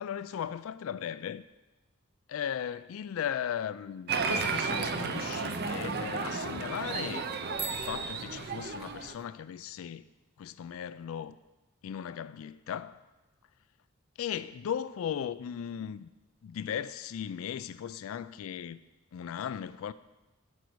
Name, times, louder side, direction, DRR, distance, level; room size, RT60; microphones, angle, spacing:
voice 1, 0.0-1.4 2.3-7.3 7.7-10.1 10.4-11.4 11.8-13.1 14.2-16.1 16.4-18.8 19.1-19.9, left 9 dB, 75° left, 0.3 m, -37 dB
Applause, 4.1-9.1, right 4 dB, 50° right, 0.6 m, -33 dB
Bicycle bell, 7.5-9.3, right 4 dB, 10° right, 0.3 m, -43 dB
13.0 x 5.3 x 4.6 m
head